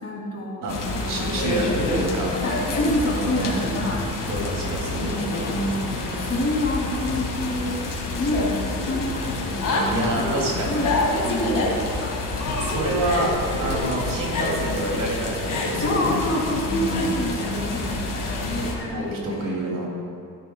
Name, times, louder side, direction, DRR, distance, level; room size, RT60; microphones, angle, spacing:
voice 1, 0.0-0.7 0.9-2.2 2.4-4.3 4.9-7.8 8.2-10.0 10.7-12.2 13.7-14.0 15.7-19.5, left 1 dB, 40° left, -3 dB, 2.7 m, -28 dB
sound 1, 0.7-18.7, left 2 dB, 60° left, 2.2 m, -27 dB
voice 2, 1.1-2.3 3.1-3.7 4.3-5.3 9.9-10.8 12.6-13.3 13.6-16.2 16.6-17.2 18.9-19.9, right 1 dB, 65° right, -2 dB, 2.9 m, -28 dB
sound 2, 1.8-2.1 2.8-3.1 3.8-4.0 4.8-5.1 5.9-6.2 7.1-7.4 8.2-8.5 9.2-9.5 10.3-10.5 11.5-11.6 12.5-12.7 13.5-13.8, left 4 dB, 75° left, 2.7 m, -38 dB
14.0 x 12.5 x 2.3 m, 2.4 s
cardioid pair, 120°, 36 cm